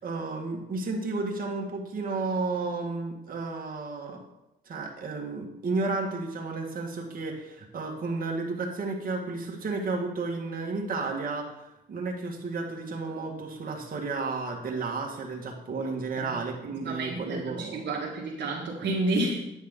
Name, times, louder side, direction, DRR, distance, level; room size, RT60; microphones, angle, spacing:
voice 1, 0.0-4.2 4.7-11.4 11.9-17.8, right 3 dB, 45° right, -1 dB, 1.8 m, -32 dB
voice 2, 16.8-19.5, right 2 dB, 60° right, -3 dB, 1.6 m, -30 dB
9.5 x 6.3 x 3.8 m, 0.88 s
cardioid pair, 90°, 20 cm